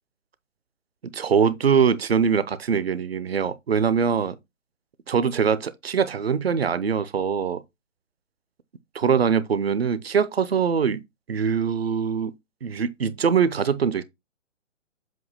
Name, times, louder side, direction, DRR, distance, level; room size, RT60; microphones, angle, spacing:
voice 1, 1.1-4.4 5.1-7.6 8.9-11.0 11.3-12.3 12.6-14.0, right 6 dB, 50° right, 0.8 m, -23 dB
7.7 x 2.6 x 5.4 m
figure-of-eight pair, 135°, 38 cm